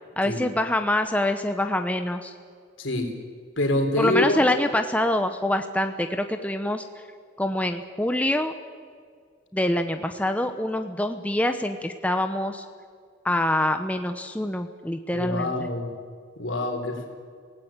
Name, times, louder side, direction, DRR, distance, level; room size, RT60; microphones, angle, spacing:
voice 1, 0.2-2.3 4.0-6.9 7.4-8.5 9.5-12.6 13.2-15.7, left 1 dB, 5° left, 7 dB, 0.8 m, -25 dB
voice 2, 2.8-3.1 3.6-4.4 15.1-15.9 16.4-17.1, left 1 dB, 90° left, 4 dB, 3.9 m, -26 dB
26.5 x 17.5 x 9.0 m, 2.1 s
head